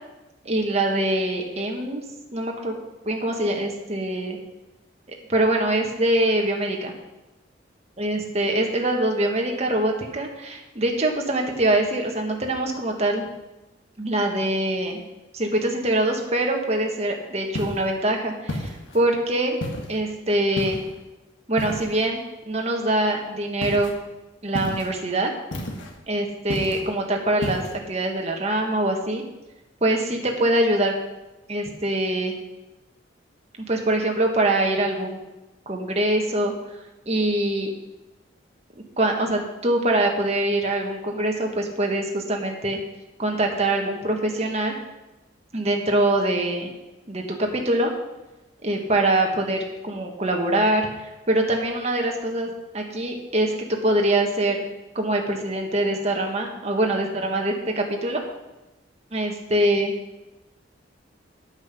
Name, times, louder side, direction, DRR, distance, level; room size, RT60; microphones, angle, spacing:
voice 1, 0.4-2.0 2.3-2.8 3.0-4.4 5.3-6.9 8.0-13.2 14.0-15.0 15.3-19.6 19.9-20.8 21.5-23.9 24.4-25.3 26.1-29.2 29.8-30.9 31.5-32.3 33.7-35.2 35.7-36.5 37.0-37.7 38.7-42.8 43.2-44.8 45.5-46.7 47.1-47.9 48.6-50.9 51.3-54.6 54.9-58.2 59.1-59.9, right 1 dB, 35° right, 2 dB, 1.5 m, -24 dB
sound 1, 17.5-17.9 18.5-19.1 19.6-20.0 20.6-21.0 21.6-22.1 23.6-24.0 24.5-25.0 25.5-26.0 26.5-26.9 27.4-27.8, left 1 dB, 80° left, 1.5 m, -32 dB
9.1 x 8.6 x 5.9 m, 1.0 s
head